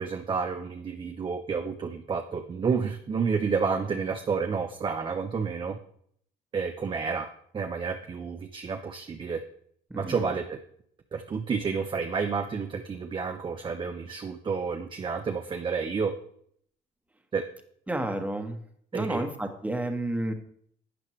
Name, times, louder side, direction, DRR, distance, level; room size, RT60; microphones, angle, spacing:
voice 1, 0.0-5.8 6.5-7.3 7.5-9.4 10.0-10.6 11.1-16.1 17.3-17.4 18.9-19.2, right 5 dB, 30° right, 5 dB, 0.7 m, -30 dB
voice 2, 9.9-10.2 17.9-18.6 18.9-20.3, right 1 dB, 10° right, 5 dB, 1.3 m, -31 dB
12.0 x 8.5 x 3.2 m, 0.66 s
cardioid pair, 110°, 17 cm